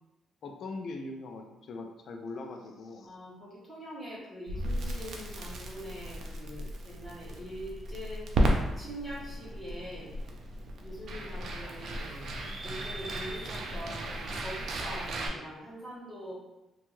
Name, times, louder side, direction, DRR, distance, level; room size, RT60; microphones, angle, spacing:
voice 1, 0.4-3.1, left 3 dB, 55° left, 3 dB, 0.3 m, -41 dB
voice 2, 3.0-8.3 8.8-10.1 10.8-12.1 12.6-16.3, equal, 5° left, -9 dB, 1.0 m, -43 dB
Crackle, 4.5-15.3, right 1 dB, 55° right, 0.4 m, -34 dB
Speech, 11.3-14.7, left 1 dB, 70° left, 0.8 m, -51 dB
2.6 x 2.3 x 3.0 m, 0.98 s
cardioid pair, 155°, 0 cm